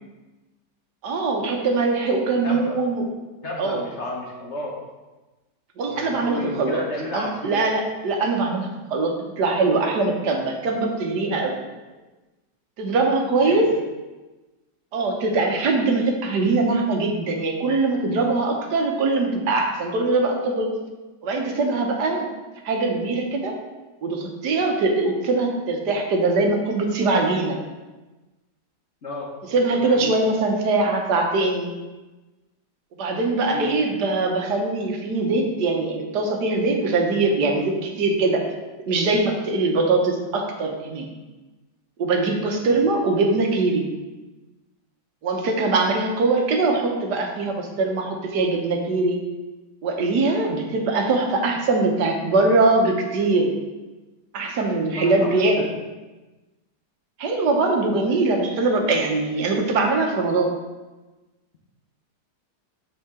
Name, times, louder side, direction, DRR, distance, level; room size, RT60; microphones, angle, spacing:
voice 1, 1.0-3.1 3.6-3.8 5.8-6.8 7.1-11.6 12.8-13.7 14.9-20.7 21.2-22.3 22.6-23.5 24.0-27.6 29.5-31.7 33.0-38.4 38.8-41.1 42.0-43.9 45.2-49.2 49.8-53.5 54.3-55.7 57.2-60.5, right 3 dB, 75° right, 2 dB, 1.6 m, -22 dB
voice 2, 2.4-2.8 3.4-4.8 5.9-7.7 13.4-13.8 29.0-29.3 29.7-30.2 33.5-33.7 42.6-42.9 54.9-55.7, left 1 dB, 45° left, -1 dB, 1.1 m, -32 dB
6.8 x 6.6 x 3.7 m, 1.2 s
omnidirectional pair, 1.8 m